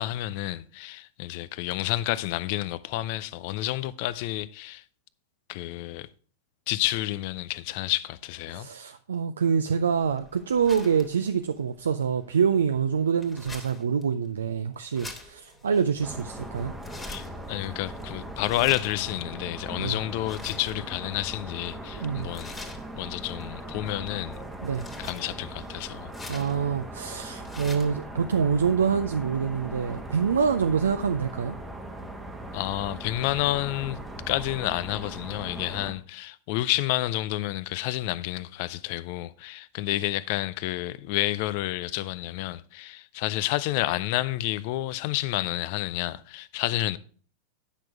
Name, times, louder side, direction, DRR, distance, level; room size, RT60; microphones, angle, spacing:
voice 1, 0.0-4.8 5.5-6.1 6.7-8.7 17.1-22.5 23.0-24.4 25.0-26.1 32.5-34.0 34.3-47.0, left 16 dB, 45° left, 0.5 m, -30 dB
voice 2, 8.5-16.7 19.8-19.9 22.0-22.3 24.6-24.9 26.3-31.6, right 6 dB, 70° right, 0.5 m, -26 dB
sound 1, 9.9-28.0, left 3 dB, 10° left, 1.9 m, -47 dB
sound 2, 16.0-35.9, right 1 dB, 5° right, 1.1 m, -39 dB
10.0 x 6.0 x 4.5 m
figure-of-eight pair, 90°, 0 cm